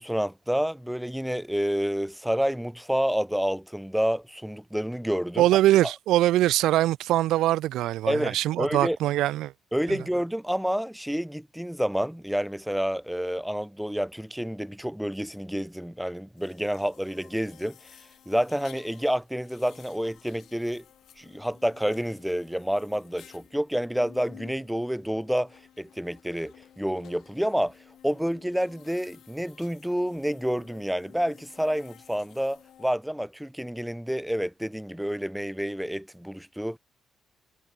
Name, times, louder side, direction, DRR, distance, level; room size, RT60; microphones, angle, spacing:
voice 1, 0.0-5.5 5.8-5.9 8.1-9.0 9.7-20.8 21.2-27.8 28.0-36.8, equal, ahead, 0.6 m, -29 dB
voice 2, 5.4-9.5 9.9-10.0, right 14 dB, 90° right, 0.5 m, -22 dB
sound 1, 16.4-32.9, left 10 dB, 70° left, 8.0 m, -54 dB
cardioid pair, 90°, 0 cm